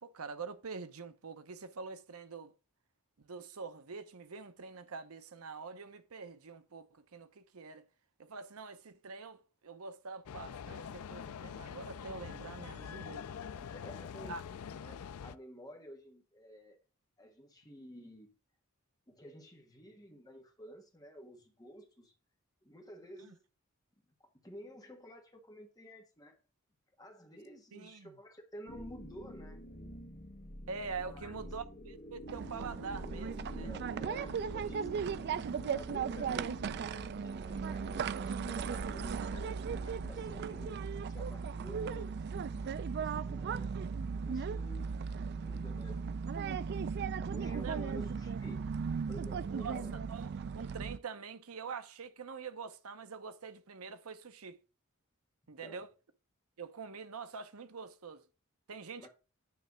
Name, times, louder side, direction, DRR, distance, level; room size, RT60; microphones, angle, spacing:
voice 1, 0.0-2.5 3.2-7.9 8.2-13.3 14.3-14.4 23.2-23.3 27.7-28.1 30.7-33.7 35.0-35.1 47.6-47.9 49.5-54.6 55.5-55.9 56.6-58.2 58.7-59.1, right 5 dB, 75° right, 0.8 m, -45 dB
sound 1, 10.3-15.4, left 7 dB, 85° left, 0.4 m, -45 dB
voice 2, 13.5-16.8 17.2-18.3 19.1-22.1 22.6-23.4 24.2-26.4 27.0-29.6 30.9-31.3 33.6-34.9 35.2-36.9 37.2-43.7 44.1-45.1 45.3-46.1 47.3-48.8 49.1-50.0 55.6-55.9 59.0-59.1, equal, 15° left, 1.6 m, -52 dB
sound 2, 28.7-40.8, equal, 45° left, 1.6 m, -47 dB
sound 3, 32.3-51.0, right 6 dB, 50° right, 0.3 m, -37 dB
9.7 x 3.3 x 6.2 m
head